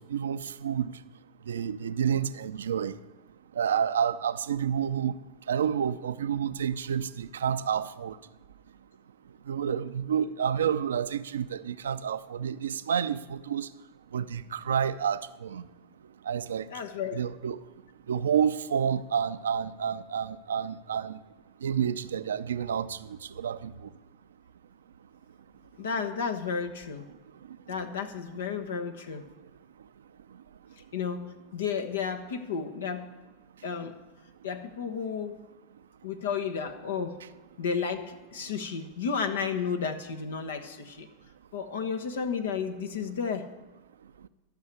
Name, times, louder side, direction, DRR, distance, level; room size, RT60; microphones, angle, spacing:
voice 1, 0.1-0.9 1.5-2.9 3.6-5.1 5.5-8.1 9.5-13.7 14.1-15.7 16.3-16.6 17.1-17.6 18.1-21.2 21.6-23.0 23.4-23.7, right 8 dB, 85° right, 0.5 m, -29 dB
voice 2, 16.7-17.2 25.8-27.1 27.7-29.3 30.9-31.3 31.5-33.0 33.6-33.9 34.4-35.4 36.0-37.2 37.6-41.1 41.5-43.5, left 6 dB, 85° left, 1.2 m, -32 dB
13.0 x 6.4 x 9.7 m
hypercardioid pair, 100°, 0 cm